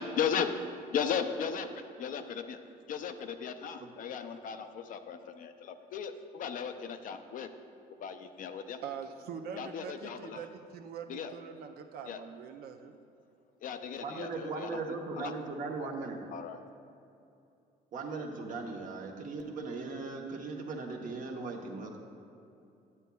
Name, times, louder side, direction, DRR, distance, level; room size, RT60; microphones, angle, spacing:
voice 1, 0.0-2.6 2.9-7.5 8.0-8.8 9.6-10.4 11.1-11.3 12.1-12.2 13.6-14.8 15.1-15.3 15.8-15.9 16.3-16.6, left 6 dB, 55° left, 8 dB, 0.4 m, -36 dB
voice 2, 8.8-13.0, right 7 dB, 65° right, 6 dB, 0.5 m, -43 dB
voice 3, 14.0-16.2 17.9-22.0, right 3 dB, 50° right, 2 dB, 0.9 m, -38 dB
9.7 x 8.1 x 2.3 m, 2.6 s
cardioid pair, 110°, 17 cm